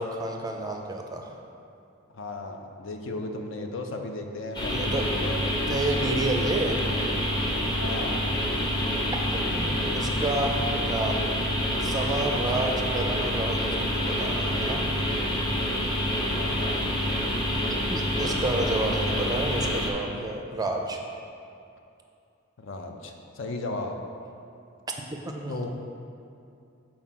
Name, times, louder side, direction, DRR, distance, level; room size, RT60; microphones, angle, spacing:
voice 1, 0.0-1.3 4.7-5.0 5.6-6.8 8.6-8.7 9.4-11.3 11.8-14.9 17.9-21.0 25.1-25.7, right 2 dB, 20° right, 3 dB, 0.4 m, -30 dB
voice 2, 2.1-5.5 7.7-8.2 16.3-16.8 22.6-24.0 25.5-25.7, left 2 dB, 65° left, 4 dB, 0.5 m, -35 dB
sound 1, 4.5-19.9, equal, 20° left, 0.8 m, -27 dB
4.7 x 4.3 x 5.8 m, 2.5 s
head